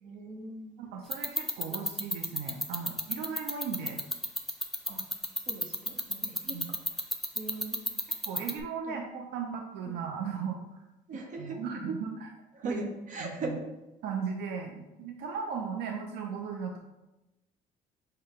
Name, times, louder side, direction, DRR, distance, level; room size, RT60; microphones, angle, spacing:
voice 1, 0.0-0.9 4.9-5.0 5.5-6.8 7.3-7.8 9.9-10.0 11.1-11.6 12.5-13.6, right 2 dB, 50° right, 2 dB, 0.8 m, -39 dB
voice 2, 0.8-4.0 6.5-6.7 8.2-10.6 11.1-12.3 12.6-12.8 13.2-13.6 14.0-16.8, right 6 dB, 80° right, 2 dB, 0.5 m, -36 dB
sound 1, 1.1-8.6, left 1 dB, ahead, 0.4 m, -30 dB
5.6 x 2.1 x 3.5 m, 1.0 s
cardioid pair, 110°, 17 cm